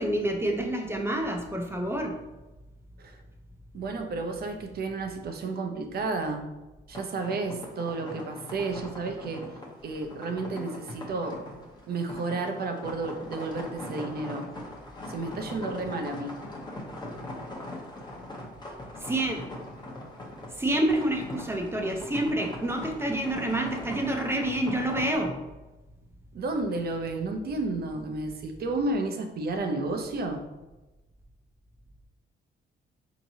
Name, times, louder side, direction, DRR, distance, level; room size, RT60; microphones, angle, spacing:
voice 1, 0.0-2.2 19.0-19.4 20.6-25.4, right 1 dB, 10° right, 2 dB, 0.6 m, -28 dB
voice 2, 3.7-6.4 6.9-9.5 9.8-11.4 11.9-14.5 15.1-16.4 26.3-30.4, right 3 dB, 50° right, 5 dB, 0.6 m, -32 dB
sound 1, 6.9-25.2, left 1 dB, 20° left, 0.8 m, -41 dB
4.4 x 2.9 x 2.7 m, 1.1 s
cardioid pair, 90°, 20 cm